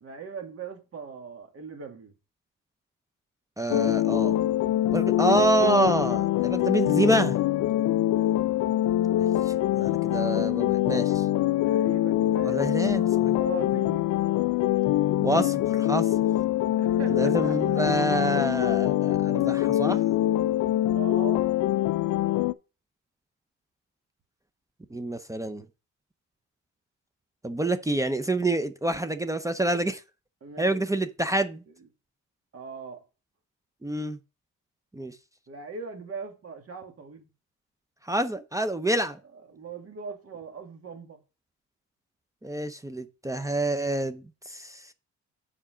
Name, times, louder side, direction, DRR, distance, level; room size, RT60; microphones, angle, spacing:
voice 1, 0.0-2.1 8.0-8.3 11.6-12.6 13.0-14.1 16.7-17.8 20.9-21.6 30.4-30.8 32.5-33.0 35.5-37.3 38.9-39.0 39.3-41.2, right 5 dB, 50° right, 2.2 m, -40 dB
voice 2, 3.6-4.4 4.9-7.4 9.2-11.3 12.4-13.4 15.2-16.1 17.1-20.0 24.9-25.6 27.4-30.0 30.6-31.6 33.8-34.2 34.9-35.2 38.0-39.2 42.4-44.9, right 1 dB, 10° right, 0.6 m, -27 dB
sound 1, 3.7-22.5, left 13 dB, 70° left, 0.5 m, -24 dB
7.2 x 5.0 x 5.0 m
cardioid pair, 90°, 30 cm